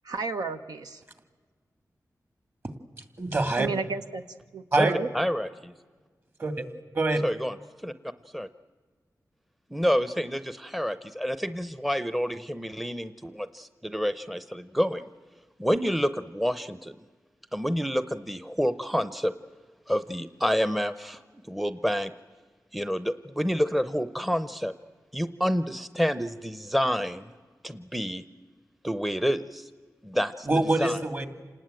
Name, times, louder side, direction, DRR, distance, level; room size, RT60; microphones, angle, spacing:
voice 1, 0.1-1.0 3.6-4.2 4.5-5.1, right 4 dB, 85° right, 8 dB, 0.9 m, -32 dB
voice 2, 3.0-3.7 4.7-4.9 6.4-6.6 6.9-7.2 30.4-31.3, right 2 dB, 40° right, 9 dB, 2.4 m, -25 dB
voice 3, 5.1-5.7 7.2-7.5 7.8-7.9 8.3-8.5 9.7-15.0 15.6-17.0 17.5-19.3 19.9-21.2 21.5-22.1 22.7-24.7 25.1-27.3 27.6-28.2 28.8-29.7 30.0-30.5 30.8-31.0, equal, ahead, 13 dB, 0.7 m, -28 dB
28.0 x 19.5 x 9.0 m, 1.5 s
wide cardioid pair, 125°, 6 cm